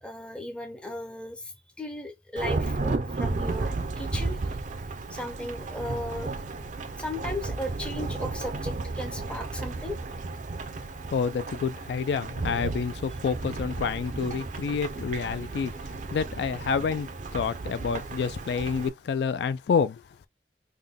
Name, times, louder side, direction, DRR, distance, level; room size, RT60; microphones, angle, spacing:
voice 1, 0.0-4.6 5.1-6.3 7.0-10.0, left 1 dB, 5° left, 0.5 m, -36 dB
Thunderstorm / Rain, 2.4-18.9, right 3 dB, 45° right, 0.5 m, -33 dB
voice 2, 11.1-20.0, left 6 dB, 65° left, 0.3 m, -28 dB
3.7 x 2.2 x 3.4 m
head